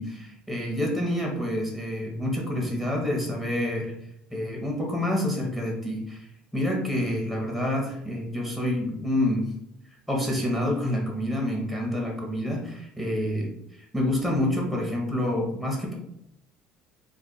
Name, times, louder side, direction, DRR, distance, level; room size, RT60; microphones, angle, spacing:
voice 1, 0.0-3.9 4.3-6.3 6.5-9.4 10.1-15.9, left 1 dB, 5° left, -1 dB, 0.9 m, -28 dB
2.4 x 2.2 x 3.8 m, 0.74 s
supercardioid pair, 95°, 3 cm